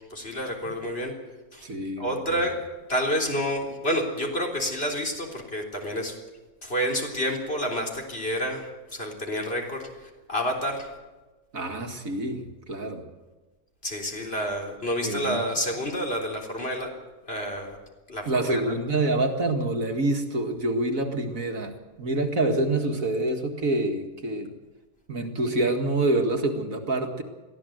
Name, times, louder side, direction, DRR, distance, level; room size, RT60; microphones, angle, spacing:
voice 1, 0.1-1.1 1.5-1.6 2.0-6.2 6.6-10.9 13.8-17.8 18.1-18.8, equal, 35° left, 1 dB, 3.8 m, -29 dB
voice 2, 1.6-2.4 11.5-13.1 15.0-15.5 18.3-24.5 25.1-27.2, right 2 dB, 55° right, 4 dB, 2.3 m, -27 dB
22.5 x 15.5 x 7.9 m, 1.2 s
omnidirectional pair, 1.7 m